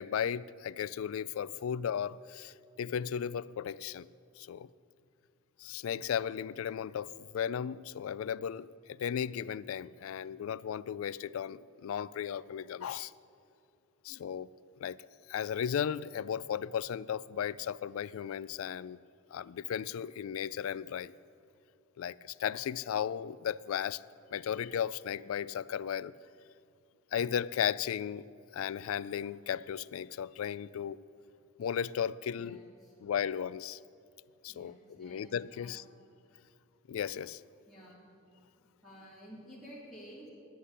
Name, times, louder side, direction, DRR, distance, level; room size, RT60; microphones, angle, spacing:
voice 1, 0.0-4.1 4.4-4.7 5.6-13.1 14.0-14.5 14.8-15.0 15.3-19.0 19.3-21.1 22.0-24.0 24.3-26.1 27.1-28.3 28.5-31.0 31.6-32.6 33.0-33.8 34.4-35.8 36.9-37.4, left 8 dB, 70° left, 0.3 m, -35 dB
voice 2, 32.3-32.9 34.5-36.0 37.7-38.0 38.8-40.3, equal, ahead, 3.2 m, -52 dB
9.9 x 9.5 x 9.9 m
head